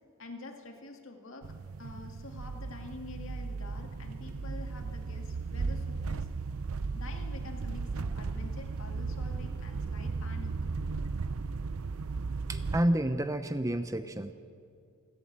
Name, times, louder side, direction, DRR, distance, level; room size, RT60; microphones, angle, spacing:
voice 1, 0.2-6.3 6.9-10.6, left 2 dB, 65° left, 4 dB, 2.1 m, -47 dB
sound 1, 1.4-12.8, right 4 dB, 75° right, 0.6 m, -36 dB
voice 2, 12.5-14.3, right 1 dB, 15° right, 10 dB, 0.6 m, -29 dB
28.0 x 11.5 x 8.7 m, 2.4 s
head